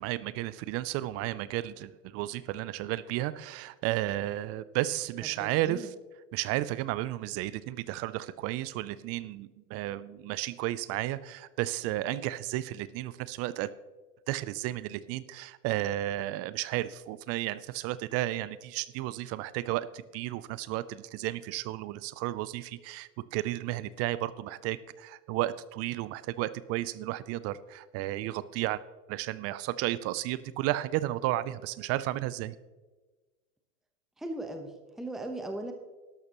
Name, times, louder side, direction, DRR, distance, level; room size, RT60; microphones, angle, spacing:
voice 1, 0.0-5.9 6.3-13.7 14.3-28.8 29.1-32.6, right 15 dB, 35° right, 17 dB, 0.4 m, -33 dB
voice 2, 5.4-5.9 34.2-35.7, right 1 dB, ahead, 5 dB, 1.0 m, -38 dB
12.0 x 12.0 x 3.0 m, 1.2 s
hypercardioid pair, 105°, 42 cm